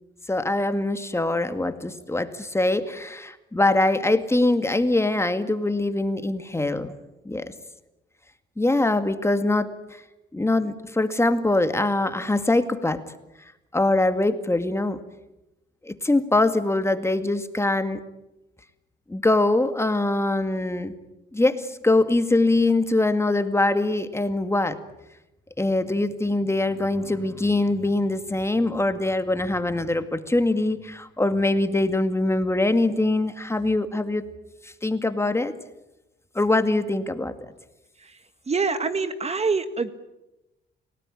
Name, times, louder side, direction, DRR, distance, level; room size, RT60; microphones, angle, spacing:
voice 1, 0.3-6.9 7.3-7.5 8.6-10.0 10.3-13.0 13.7-15.0 15.8-18.0 19.1-20.9 21.3-24.8 25.6-34.2 34.6-35.5 36.4-37.3, left 2 dB, 15° left, 9 dB, 2.1 m, -23 dB
voice 2, 38.5-39.9, right 4 dB, 30° right, 11 dB, 1.8 m, -25 dB
29.5 x 18.0 x 10.0 m, 0.97 s
cardioid pair, 90°, 20 cm